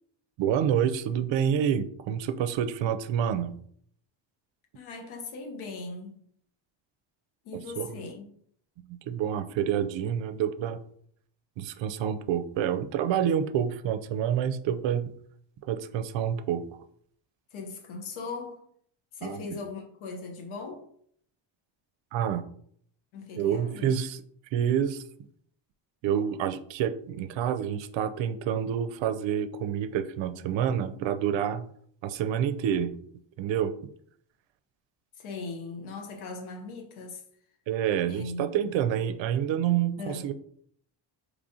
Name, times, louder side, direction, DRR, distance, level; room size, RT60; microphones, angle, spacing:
voice 1, 0.4-3.6 7.5-7.9 8.8-10.8 11.6-15.1 15.6-16.6 19.2-19.6 22.1-22.4 23.4-24.2 24.5-25.0 26.0-31.7 32.0-33.0 33.4-33.7 37.7-40.3, right 9 dB, 70° right, 0.5 m, -28 dB
voice 2, 4.7-6.2 7.4-8.3 17.5-18.6 19.1-20.9 23.1-23.9 35.1-37.2 38.1-38.5 40.0-40.3, left 3 dB, 80° left, 0.9 m, -39 dB
4.8 x 3.2 x 2.7 m
cardioid pair, 115°, 47 cm